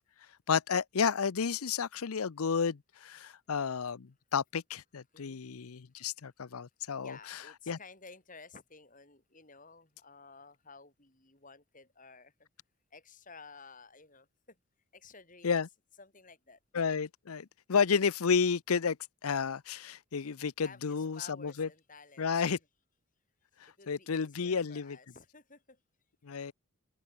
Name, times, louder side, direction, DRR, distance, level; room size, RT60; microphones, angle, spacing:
voice 1, 0.5-7.2 7.7-7.8 15.4-15.7 16.7-19.0 19.2-21.7 22.2-22.6 23.9-25.0 26.2-26.5, left 6 dB, 80° left, 0.6 m, -31 dB
voice 2, 5.1-5.4 7.0-12.5 12.9-14.6 14.9-15.5 16.0-16.6 20.6-22.6 23.7-25.8, left 4 dB, 35° left, 5.3 m, -54 dB
head